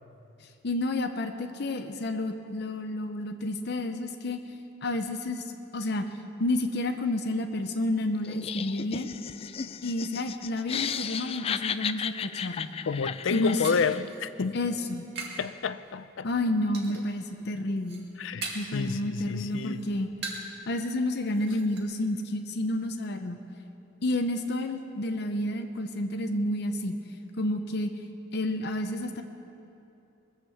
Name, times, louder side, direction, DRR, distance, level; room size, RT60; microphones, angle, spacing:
voice 1, 0.6-4.4 4.8-5.4 5.7-6.0 6.4-9.1 9.8-12.7 13.3-13.6 14.5-15.0 16.2-18.1 18.5-20.1 20.7-23.4 24.0-27.0 27.4-27.9 28.3-29.2, left 1 dB, 60° left, 0.7 m, -30 dB
Laughter, 8.2-14.1, left 7 dB, 30° left, 0.3 m, -35 dB
voice 2, 12.9-14.6 15.4-16.3 18.2-19.9, left 5 dB, 85° left, 0.5 m, -30 dB
sound 1, 12.9-15.5 15.8-16.3 16.7-17.2 17.6-18.8 19.2-20.6 20.9-21.0 21.3-21.8, right 3 dB, 60° right, 2.1 m, -41 dB
21.0 x 7.5 x 7.2 m
head